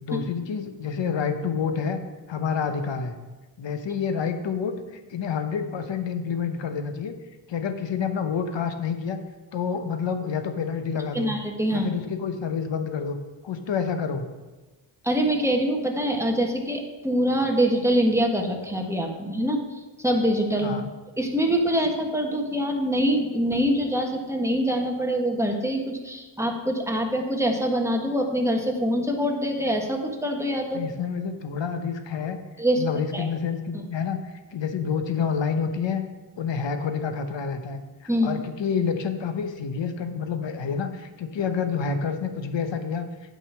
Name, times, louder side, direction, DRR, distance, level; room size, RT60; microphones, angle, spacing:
voice 1, 0.0-2.0 2.3-3.1 3.6-7.1 7.5-9.2 9.5-11.3 11.7-13.2 13.4-14.3 20.6-20.9 30.7-32.4 32.8-34.2 34.5-36.0 36.4-43.1, left 6 dB, 70° left, 8 dB, 1.1 m, -28 dB
voice 2, 11.1-11.9 15.0-19.6 20.0-20.7 21.2-30.8 32.6-32.8 33.1-33.3 38.1-38.4, equal, 5° right, 1 dB, 1.4 m, -24 dB
9.0 x 5.4 x 6.3 m, 1.2 s
cardioid pair, 80°, 46 cm